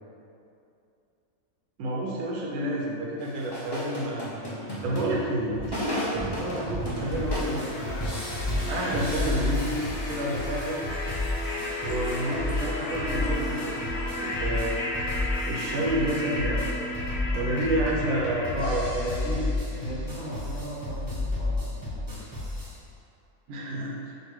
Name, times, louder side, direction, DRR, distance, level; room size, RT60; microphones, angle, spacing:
voice 1, 1.8-4.2 4.8-8.0 8.7-10.8 11.8-14.7 15.5-16.8 17.3-19.1 23.5-24.1, right 1 dB, 75° right, -4 dB, 1.1 m, -29 dB
sound 1, 3.2-10.6, equal, 25° left, 0.5 m, -34 dB
sound 2, 6.9-19.8, left 1 dB, 75° left, 1.2 m, -35 dB
sound 3, 7.2-22.7, left 2 dB, 20° right, 0.7 m, -32 dB
voice 2, 19.0-22.2, equal, 60° left, -10 dB, 1.9 m, -37 dB
6.4 x 2.5 x 3.1 m, 2.6 s
omnidirectional pair, 1.6 m